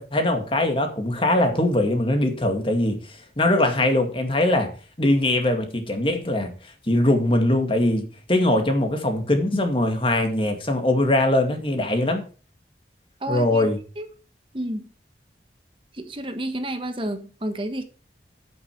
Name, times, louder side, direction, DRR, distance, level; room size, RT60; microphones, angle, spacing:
voice 1, 0.0-12.2 13.3-13.8, left 1 dB, 30° left, 2.1 m, -22 dB
voice 2, 13.2-13.7 14.0-14.1 14.5-14.9 15.9-17.8, right 1 dB, 30° right, 1.4 m, -30 dB
9.2 x 8.7 x 4.6 m
head